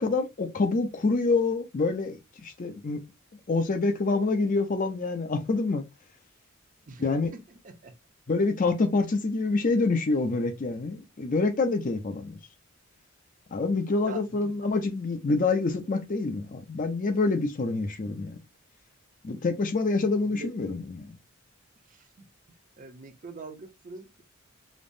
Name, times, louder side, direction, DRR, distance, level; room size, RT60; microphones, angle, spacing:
voice 1, 0.0-3.0 3.5-5.8 7.0-7.3 8.3-12.4 13.5-18.4 19.2-21.1, left 3 dB, 40° left, 0.5 m, -26 dB
voice 2, 6.9-7.9 14.0-14.6 20.3-20.5 21.9-22.3 22.8-24.2, right 3 dB, 40° right, 0.6 m, -44 dB
5.1 x 2.0 x 2.5 m
head